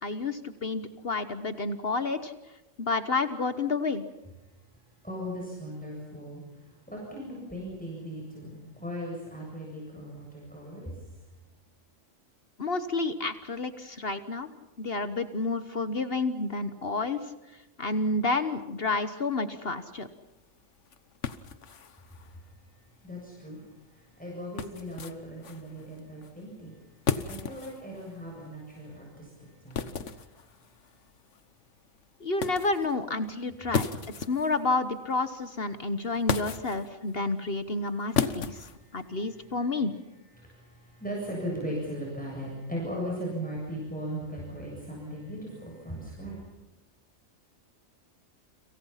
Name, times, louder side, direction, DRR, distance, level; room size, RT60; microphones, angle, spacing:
voice 1, 0.0-2.3 2.8-4.0 12.6-14.5 14.8-17.2 17.8-20.1 32.2-33.9 34.2-38.6 38.9-39.9, left 3 dB, 50° left, 11 dB, 1.4 m, -30 dB
voice 2, 5.0-6.4 6.9-10.9 23.0-23.6 24.2-26.7 27.2-29.3 29.6-30.0 40.4-46.3, equal, 5° left, -3 dB, 7.6 m, -38 dB
sound 1, 19.9-39.5, left 6 dB, 65° left, 1.5 m, -37 dB
30.0 x 27.0 x 5.8 m, 1.0 s
omnidirectional pair, 1.4 m